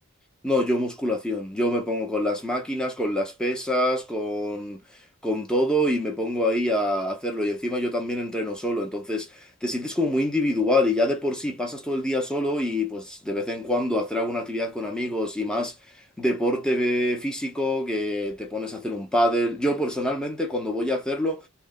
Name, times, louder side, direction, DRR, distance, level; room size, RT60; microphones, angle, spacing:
voice 1, 0.4-4.8 5.2-15.7 16.2-21.4, left 1 dB, 5° left, 0.6 m, -26 dB
3.1 x 2.1 x 2.4 m
head